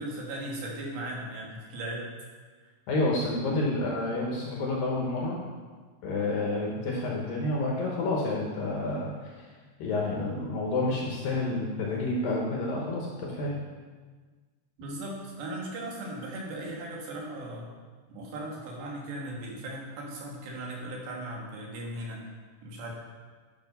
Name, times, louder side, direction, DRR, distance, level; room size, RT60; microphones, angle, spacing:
voice 1, 0.0-2.1 14.8-17.6 18.1-22.2 22.6-22.9, right 1 dB, 70° right, -2 dB, 3.9 m, -37 dB
voice 2, 2.9-5.4 6.0-9.5 9.8-13.5, left 2 dB, 65° left, -2 dB, 2.4 m, -29 dB
11.0 x 6.5 x 5.5 m, 1.4 s
omnidirectional pair, 5.2 m